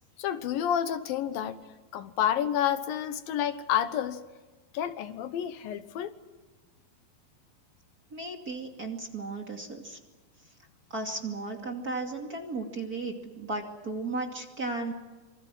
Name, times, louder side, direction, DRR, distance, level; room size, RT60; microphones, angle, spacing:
voice 1, 0.2-1.6 1.9-4.2 4.7-6.1, left 10 dB, 75° left, 11 dB, 2.8 m, -29 dB
voice 2, 8.1-10.0 10.9-14.9, right 3 dB, 25° right, 2 dB, 2.6 m, -35 dB
26.5 x 26.0 x 6.2 m, 1.2 s
omnidirectional pair, 4.2 m